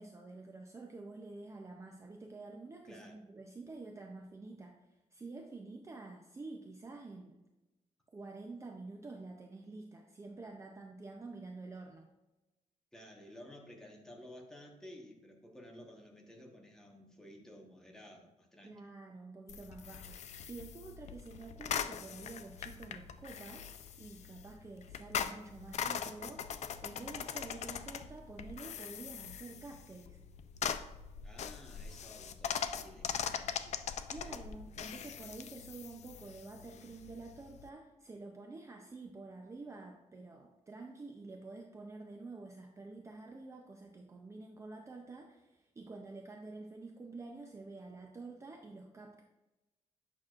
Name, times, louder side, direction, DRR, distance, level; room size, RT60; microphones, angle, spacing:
voice 1, 0.0-4.7 5.1-7.4 8.1-12.1 18.6-23.7 24.0-26.6 26.8-30.2 34.1-49.2, right 3 dB, 25° right, 2 dB, 0.5 m, -49 dB
voice 2, 12.9-18.8 31.2-33.7 34.2-34.4, left 1 dB, 5° left, -1 dB, 1.1 m, -54 dB
sound 1, 19.5-37.7, left 8 dB, 65° left, 0.4 m, -41 dB
8.6 x 6.0 x 2.4 m, 1.0 s
wide cardioid pair, 170°, 13 cm